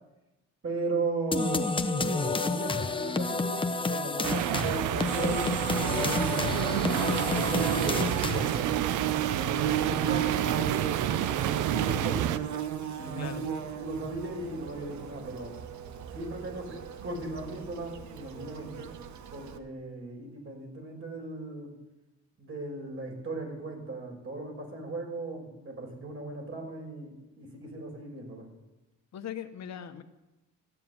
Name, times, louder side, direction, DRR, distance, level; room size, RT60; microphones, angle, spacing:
voice 1, 0.6-6.6 7.2-9.0 9.3-12.4 12.9-15.5 16.1-18.9 19.3-21.8 22.4-28.5, right 2 dB, 45° right, 1 dB, 5.4 m, -37 dB
sound 1, 1.3-8.7, left 3 dB, 15° left, 0.8 m, -30 dB
sound 2, 4.2-12.4, right 12 dB, 85° right, 0.7 m, -29 dB
Bird / Buzz, 6.9-19.6, right 10 dB, 70° right, 1.2 m, -36 dB
voice 2, 29.1-30.0, left 9 dB, 60° left, 8 dB, 1.1 m, -39 dB
14.5 x 7.6 x 9.3 m, 1.0 s
cardioid pair, 90°, 30 cm